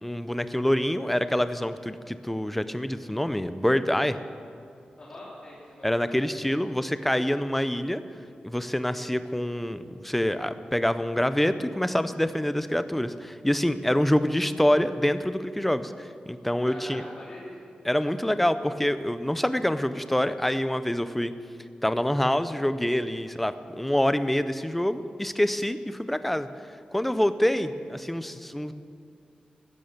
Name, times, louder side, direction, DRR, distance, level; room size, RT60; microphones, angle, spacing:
voice 1, 0.0-4.2 5.8-8.0 8.4-17.0 17.8-21.3 21.8-26.5 26.9-28.7, left 1 dB, 5° left, 11 dB, 0.5 m, -26 dB
voice 2, 5.0-6.1 16.6-17.6 23.2-23.3, left 1 dB, 40° left, -8 dB, 3.0 m, -43 dB
14.5 x 11.0 x 6.7 m, 2.5 s
wide cardioid pair, 140°, 3 cm